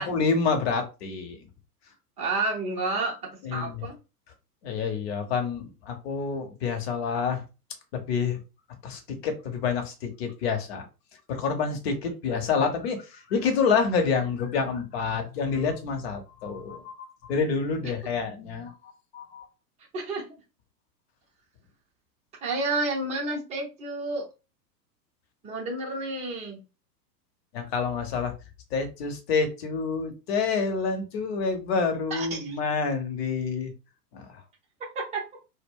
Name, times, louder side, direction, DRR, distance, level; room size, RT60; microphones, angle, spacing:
voice 1, 0.0-1.4 3.4-3.8 4.6-7.4 7.9-8.4 8.8-10.8 11.3-18.7 19.1-19.5 27.5-28.3 28.7-33.7 34.1-34.4, left 5 dB, 40° left, 5 dB, 0.8 m, -28 dB
voice 2, 2.2-3.2 3.5-4.0 17.8-17.9 19.9-20.2 22.4-24.3 25.4-26.6 32.1-32.6 34.8-35.2, right 2 dB, 15° right, -1 dB, 0.6 m, -30 dB
2.2 x 2.1 x 3.5 m, 0.29 s
figure-of-eight pair, 95°, 49 cm